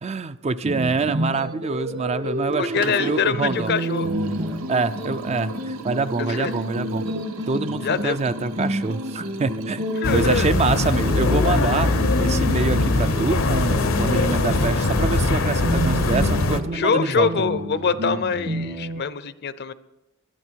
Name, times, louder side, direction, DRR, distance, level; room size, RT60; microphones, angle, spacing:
voice 1, 0.0-3.7 4.7-7.0 7.5-9.8 10.1-11.9 12.2-17.3, right 4 dB, 30° right, 12 dB, 0.4 m, -25 dB
sound 1, 0.6-19.0, equal, 60° right, 2.2 m, -30 dB
Liquid, 2.5-16.6, right 3 dB, 85° right, 0.9 m, -39 dB
voice 2, 2.6-4.1 6.3-6.7 7.8-8.2 10.0-10.5 16.7-19.7, left 6 dB, 55° left, 15 dB, 0.6 m, -24 dB
sound 2, 10.0-16.6, left 2 dB, 75° left, 0.9 m, -21 dB
20.5 x 11.5 x 4.5 m, 0.97 s
head